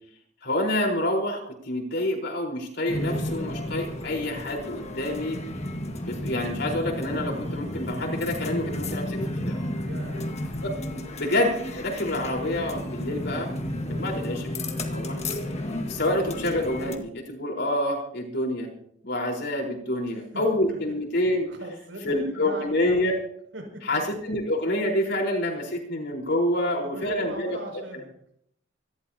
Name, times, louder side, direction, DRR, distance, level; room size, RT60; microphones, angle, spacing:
voice 1, 0.4-5.4 6.1-9.6 10.6-10.7 11.2-13.5 13.9-14.4 14.7-15.2 15.9-18.7 19.0-21.5 22.0-23.1 23.8-27.6, left 1 dB, 65° left, 1 dB, 4.4 m, -27 dB
sound 1, 2.9-17.0, left 1 dB, 35° left, 1.6 m, -32 dB
voice 2, 9.8-10.3 13.8-14.2 20.1-21.0 21.5-23.1 23.5-24.0 26.5-28.1, right 1 dB, 80° right, 2 dB, 6.4 m, -40 dB
26.5 x 13.5 x 2.9 m, 0.68 s
head